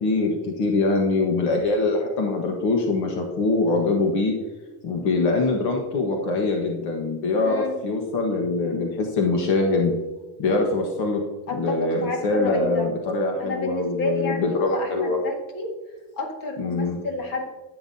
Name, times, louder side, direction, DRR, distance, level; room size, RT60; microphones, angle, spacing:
voice 1, 0.0-4.3 4.8-9.9 10.4-11.2 11.5-15.2 16.6-17.0, left 3 dB, 70° left, 1 dB, 1.6 m, -23 dB
voice 2, 7.5-7.8 11.5-12.9 13.4-15.7 16.1-17.4, left 2 dB, 50° left, 2 dB, 2.0 m, -30 dB
11.0 x 9.5 x 2.8 m, 1.2 s
cardioid pair, 175°, 42 cm